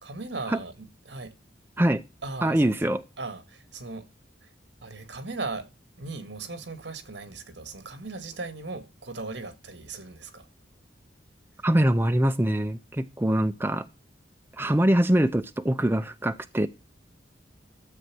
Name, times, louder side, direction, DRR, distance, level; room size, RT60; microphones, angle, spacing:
voice 1, 0.0-1.4 2.2-2.8 3.2-4.1 4.4-4.5 4.8-5.7 6.0-10.5 13.3-13.4, right 3 dB, 70° right, 2.0 m, -38 dB
voice 2, 2.4-3.0 11.6-13.9 14.6-16.7, right 1 dB, 10° right, 0.6 m, -23 dB
13.0 x 7.9 x 6.0 m
head